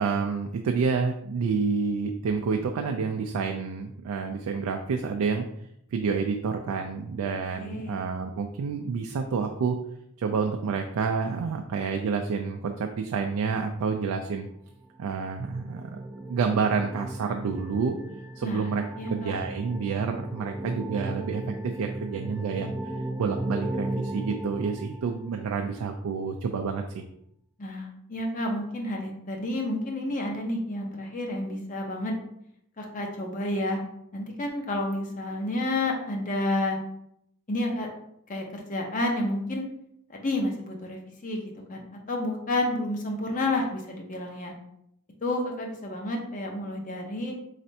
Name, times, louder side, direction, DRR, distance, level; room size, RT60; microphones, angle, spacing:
voice 1, 0.0-5.4 5.9-9.8 10.2-14.5 15.0-16.0 16.3-18.0 18.4-22.7 23.2-27.0, right 5 dB, 90° right, 4 dB, 0.3 m, -29 dB
voice 2, 7.5-8.0 18.4-18.7 19.0-19.4 27.6-32.2 32.8-33.8 34.1-36.8 37.5-37.9 38.3-39.7 40.1-41.8 42.1-44.5 45.2-47.3, left 1 dB, 35° left, 2 dB, 0.6 m, -30 dB
sound 1, 14.8-25.6, right 1 dB, 10° right, 0.3 m, -36 dB
4.2 x 3.3 x 2.7 m, 0.75 s
head